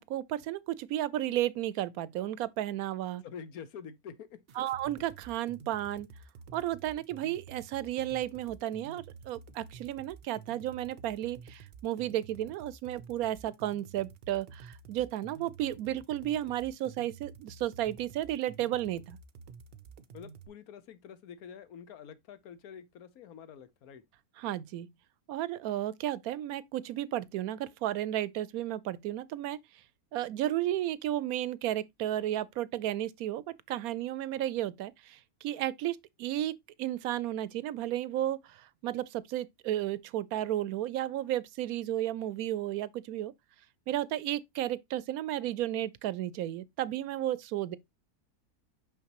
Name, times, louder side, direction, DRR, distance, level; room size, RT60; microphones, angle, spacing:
voice 1, 0.0-3.2 4.6-6.1 6.5-19.2 24.4-24.9 25.3-29.6 30.1-36.5 36.8-43.3 43.9-47.8, right 13 dB, 80° right, 1.0 m, -33 dB
voice 2, 3.2-4.4 20.1-24.0, left 7 dB, 80° left, 1.3 m, -47 dB
sound 1, 4.5-20.5, right 5 dB, 55° right, 0.7 m, -50 dB
5.8 x 5.8 x 2.9 m
omnidirectional pair, 1.5 m